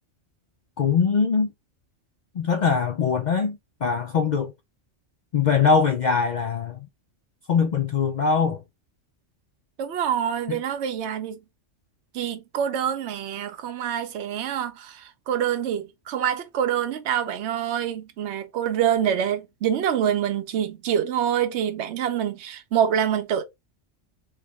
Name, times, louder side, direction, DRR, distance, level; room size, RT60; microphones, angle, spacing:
voice 1, 0.8-1.5 2.3-4.5 5.3-6.9 7.5-8.6 10.5-10.6, left 5 dB, 70° left, 0.4 m, -22 dB
voice 2, 9.8-11.4 12.1-23.4, right 9 dB, 65° right, 0.9 m, -26 dB
4.5 x 2.3 x 3.4 m
omnidirectional pair, 1.3 m